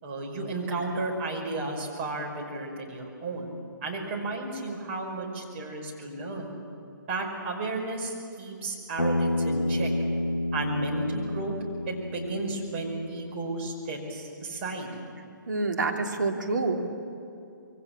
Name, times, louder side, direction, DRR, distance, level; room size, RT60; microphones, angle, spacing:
voice 1, 0.0-3.5 3.8-6.5 7.1-9.9 10.5-11.6 11.9-14.9, right 2 dB, 35° right, 0 dB, 5.5 m, -33 dB
Bass guitar, 9.0-13.2, left 1 dB, 85° left, 1.2 m, -29 dB
voice 2, 15.5-16.9, right 3 dB, 65° right, 1 dB, 3.0 m, -27 dB
26.0 x 23.0 x 7.4 m, 2.6 s
figure-of-eight pair, 135°, 11 cm